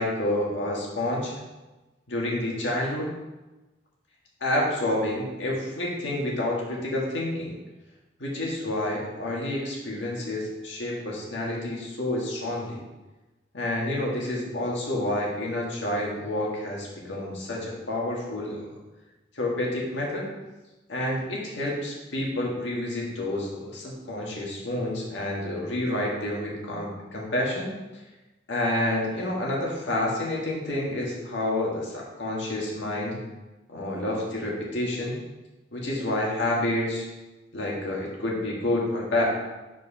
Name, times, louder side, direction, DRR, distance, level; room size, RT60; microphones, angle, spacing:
voice 1, 0.0-1.3 2.1-3.1 4.4-7.5 8.2-12.8 13.5-18.8 19.3-20.3 20.9-27.7 28.5-33.2 33.7-35.2 35.7-37.1 37.5-39.2, left 1 dB, 85° left, -3 dB, 1.8 m, -29 dB
5.0 x 4.7 x 5.5 m, 1.1 s
head